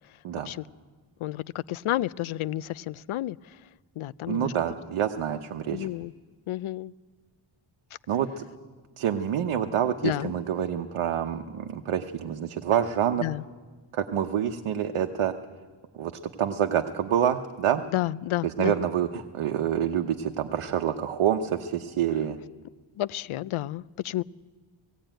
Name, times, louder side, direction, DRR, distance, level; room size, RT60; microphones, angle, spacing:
voice 1, 1.2-3.4 4.0-4.5 5.7-6.1 6.5-6.9 10.0-10.3 13.2-13.4 17.9-18.7 23.0-24.2, left 15 dB, 75° left, 19 dB, 0.6 m, -30 dB
voice 2, 4.3-5.9 8.1-8.4 9.0-13.2 13.9-15.3 15.9-16.1 16.4-17.8 18.4-22.4, right 9 dB, 80° right, 4 dB, 1.0 m, -27 dB
17.0 x 17.0 x 9.0 m, 1.4 s
wide cardioid pair, 170°, 49 cm